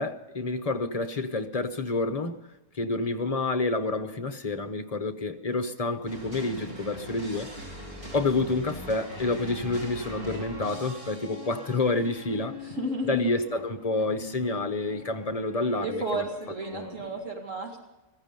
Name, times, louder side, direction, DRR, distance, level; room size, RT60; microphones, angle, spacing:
voice 1, 0.0-2.5 2.7-7.5 8.1-12.6 13.1-16.2 16.7-17.0, left 3 dB, 30° left, 0.9 m, -29 dB
sound 1, 6.1-17.3, left 1 dB, 40° right, 4.1 m, -42 dB
voice 2, 12.6-13.3 15.8-17.9, right 1 dB, 60° right, 2.5 m, -32 dB
15.5 x 15.0 x 5.2 m
omnidirectional pair, 1.5 m